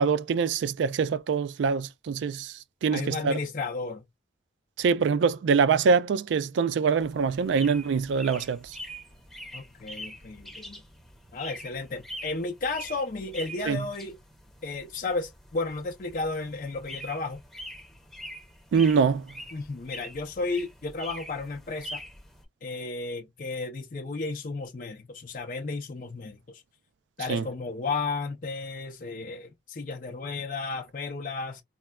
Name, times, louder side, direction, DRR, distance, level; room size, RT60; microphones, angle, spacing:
voice 1, 0.0-2.5 2.8-3.3 4.8-8.6 13.7-13.8 18.7-19.3 27.3-27.4, right 5 dB, 85° right, 0.3 m, -24 dB
voice 2, 2.9-4.0 9.5-10.8 11.3-14.2 14.6-17.4 19.5-22.0 22.6-26.6 27.2-31.6, left 3 dB, 45° left, 0.5 m, -33 dB
sound 1, 7.0-22.4, equal, ahead, 0.8 m, -44 dB
4.3 x 2.0 x 2.2 m
head